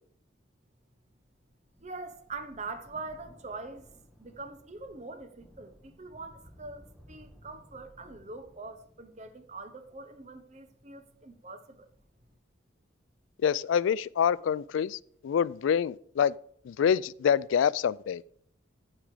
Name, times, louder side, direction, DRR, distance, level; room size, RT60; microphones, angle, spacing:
Thunder, 1.3-14.1 15.0-15.1, equal, ahead, 1.2 m, -59 dB
voice 1, 1.8-3.9 4.2-11.9, right 3 dB, 35° right, 0.9 m, -43 dB
voice 2, 13.4-16.3 16.6-18.2, left 8 dB, 80° left, 0.3 m, -26 dB
15.0 x 5.1 x 4.9 m
head